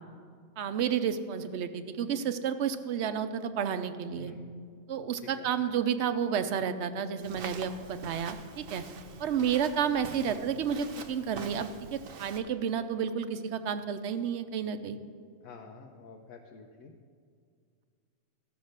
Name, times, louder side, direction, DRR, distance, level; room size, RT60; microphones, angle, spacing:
voice 1, 0.6-4.3 4.9-8.8 9.2-15.0, right 7 dB, 60° right, 10 dB, 0.9 m, -31 dB
Walk footsteps, 7.2-12.4, right 5 dB, 80° right, 1.2 m, -45 dB
voice 2, 15.4-16.9, left 5 dB, 85° left, 1 dB, 1.2 m, -49 dB
14.5 x 6.0 x 6.5 m, 2.1 s
omnidirectional pair, 1.4 m